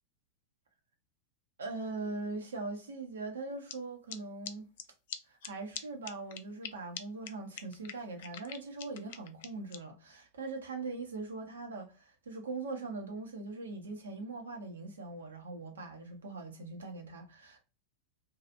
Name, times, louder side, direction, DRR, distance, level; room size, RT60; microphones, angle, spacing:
voice 1, 1.6-4.7 5.3-17.6, right 3 dB, 70° right, 0.7 m, -41 dB
sound 1, 3.7-3.8 4.1-4.2 4.5-4.6 4.8-4.9 5.1-5.2 5.4-5.5 5.8-5.9 6.0-6.7 7.0-7.1 7.3-7.4 7.6-9.8, left 9 dB, 55° left, 0.3 m, -42 dB
2.7 x 2.3 x 2.5 m
figure-of-eight pair, 90°, 0 cm